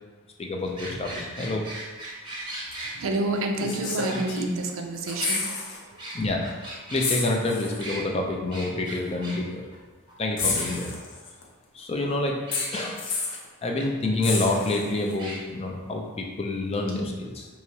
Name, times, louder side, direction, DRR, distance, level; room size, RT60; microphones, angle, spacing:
voice 1, 0.4-1.1 1.4-1.6 6.1-9.6 10.2-10.9 11.7-12.4 12.7-13.0 13.6-17.5, left 2 dB, 30° left, 1 dB, 0.4 m, -27 dB
sound 1, 0.6-2.9 3.3-3.4 4.1-4.7 5.1-7.1 7.8-8.0 8.5-9.4 9.7-9.8 10.1-10.2 10.6-11.2 12.5-12.9 13.8-13.9 14.2-14.3 15.2-15.4, right 1 dB, 20° right, 0.8 m, -38 dB
sound 2, 2.7-2.8 3.6-4.7 5.0-5.8 6.1-6.3 7.0-7.9 8.9-9.0 10.4-11.4 12.5-13.5 14.2-15.1 16.9-17.0, left 4 dB, 60° left, 0.7 m, -30 dB
voice 2, 2.8-6.0, right 2 dB, 65° right, 3 dB, 0.5 m, -29 dB
4.7 x 3.0 x 2.8 m, 1.3 s
head